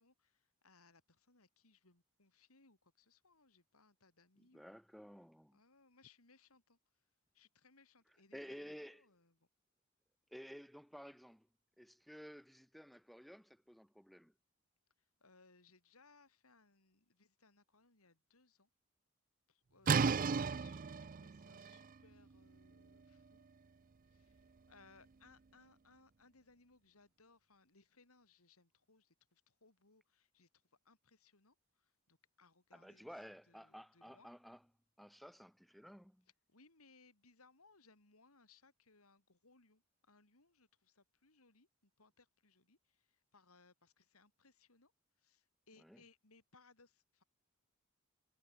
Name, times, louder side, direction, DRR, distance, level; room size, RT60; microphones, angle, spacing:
voice 1, 0.0-4.8 5.5-6.8 7.3-9.5 15.2-18.7 19.5-23.4 24.1-30.5 30.8-33.1 33.5-34.3 36.5-44.9 45.2-47.2, left 4 dB, 85° left, 3.9 m, -68 dB
voice 2, 4.5-5.6 8.3-9.0 10.3-11.5 11.8-14.3 32.7-34.6 35.0-36.2 45.8-46.0, equal, ahead, 0.9 m, -54 dB
sound 1, 19.9-25.5, right 5 dB, 40° right, 0.4 m, -38 dB
head